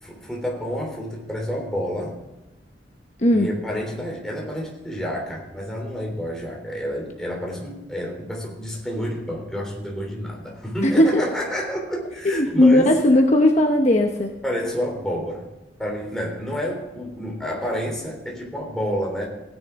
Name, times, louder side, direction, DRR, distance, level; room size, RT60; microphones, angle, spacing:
voice 1, 0.0-2.2 3.3-13.0 14.4-15.4 15.8-19.3, equal, 5° left, -1 dB, 3.4 m, -29 dB
voice 2, 10.8-11.2 12.2-14.3, left 1 dB, 40° left, 2 dB, 1.0 m, -17 dB
17.0 x 10.0 x 3.7 m, 1.0 s
head